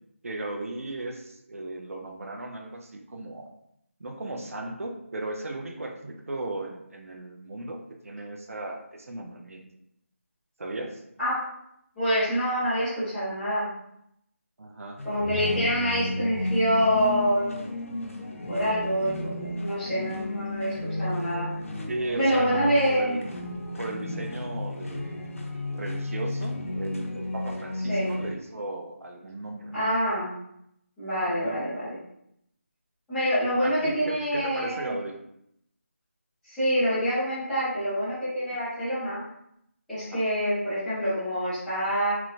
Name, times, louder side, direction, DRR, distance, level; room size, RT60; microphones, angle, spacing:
voice 1, 0.2-3.5 4.0-9.6 10.6-11.0 14.6-15.0 21.9-23.3 23.8-25.2 25.7-29.9 31.3-31.6 33.6-35.1 40.1-40.2, right 2 dB, 75° right, 2 dB, 0.5 m, -36 dB
voice 2, 12.0-13.7 15.0-17.7 18.5-21.5 22.2-23.2 27.9-28.1 29.7-30.3 31.0-32.0 33.1-34.9 36.5-39.2 39.9-42.1, equal, ahead, -19 dB, 0.5 m, -26 dB
sound 1, 15.0-28.3, left 1 dB, 75° left, 0.5 m, -33 dB
3.0 x 2.0 x 2.4 m, 0.76 s
figure-of-eight pair, 175°, 8 cm